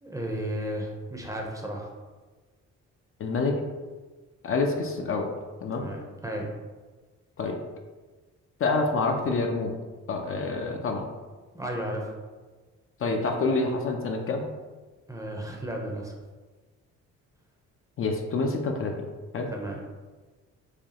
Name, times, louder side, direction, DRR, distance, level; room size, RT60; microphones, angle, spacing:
voice 1, 0.0-1.9 5.7-6.5 11.5-12.1 15.1-16.1 19.5-19.8, right 1 dB, 10° right, 0 dB, 0.6 m, -34 dB
voice 2, 3.2-3.6 4.4-5.3 5.6-5.8 7.4-7.6 8.6-9.8 10.1-11.1 13.0-14.4 18.0-18.9 19.3-19.5, left 3 dB, 45° left, 2 dB, 0.5 m, -27 dB
4.9 x 2.2 x 2.8 m, 1.3 s
cardioid pair, 90°, 30 cm